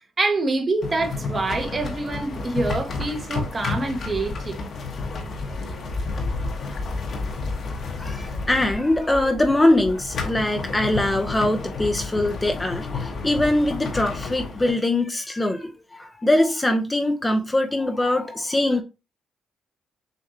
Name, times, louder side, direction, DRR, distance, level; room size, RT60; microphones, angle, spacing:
voice 1, 0.2-4.5, right 2 dB, 35° right, 1.0 m, -26 dB
sound 1, 0.8-14.7, left 3 dB, 55° left, 1.2 m, -31 dB
voice 2, 8.0-18.8, left 1 dB, 15° left, 0.6 m, -22 dB
6.6 x 2.6 x 2.8 m
cardioid pair, 90°, 0 cm